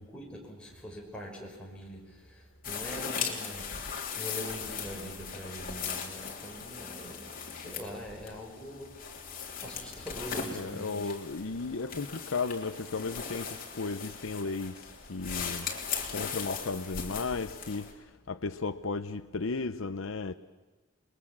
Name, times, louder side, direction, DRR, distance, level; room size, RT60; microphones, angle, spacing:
voice 1, 0.0-9.2 9.6-11.1, equal, 5° left, 5.9 m, -43 dB
sound 1, 2.6-17.9, left 6 dB, 45° left, 3.5 m, -39 dB
voice 2, 10.5-14.8 15.1-15.7 16.1-17.9 18.3-20.3, left 4 dB, 80° left, 0.8 m, -34 dB
28.5 x 22.0 x 7.4 m
head